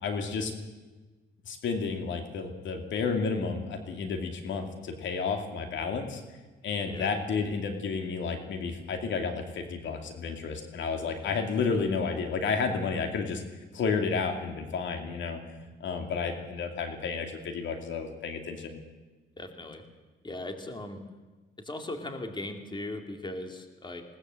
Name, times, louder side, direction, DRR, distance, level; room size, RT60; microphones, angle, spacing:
voice 1, 0.0-0.5 1.5-6.2 6.6-13.4 13.7-15.4 15.8-18.8, left 5 dB, 70° left, 5 dB, 2.6 m, -31 dB
voice 2, 19.4-19.8 20.2-21.0 21.6-24.0, left 1 dB, 25° left, 5 dB, 2.9 m, -38 dB
20.5 x 19.0 x 7.8 m, 1.2 s
cardioid pair, 90°, 20 cm